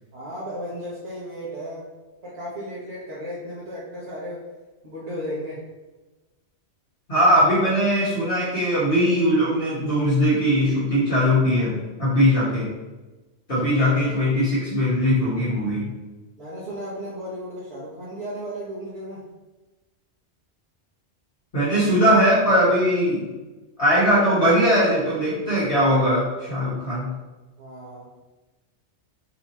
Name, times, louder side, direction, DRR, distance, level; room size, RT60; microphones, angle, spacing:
voice 1, 0.1-1.9 2.2-4.4 4.8-5.6 16.4-19.2 27.6-28.1, equal, 65° right, -9 dB, 1.3 m, -34 dB
voice 2, 7.1-12.7 13.5-15.9 21.5-23.3 23.8-27.1, equal, 50° left, -10 dB, 1.4 m, -20 dB
4.2 x 2.9 x 4.1 m, 1.2 s
omnidirectional pair, 1.2 m